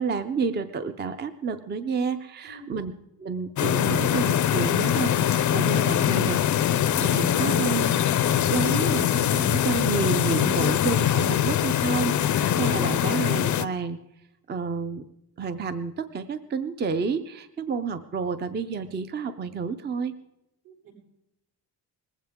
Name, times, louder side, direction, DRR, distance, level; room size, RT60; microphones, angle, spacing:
voice 1, 0.0-2.9 3.2-14.0 14.5-15.0 15.4-20.1, right 5 dB, 25° right, 11 dB, 0.4 m, -30 dB
voice 2, 2.4-2.7 20.6-20.9, equal, 70° right, -4 dB, 7.8 m, -48 dB
sound 1, 3.6-13.7, left 10 dB, 45° left, 0.4 m, -23 dB
20.0 x 15.5 x 3.6 m, 0.86 s
wide cardioid pair, 175°, 42 cm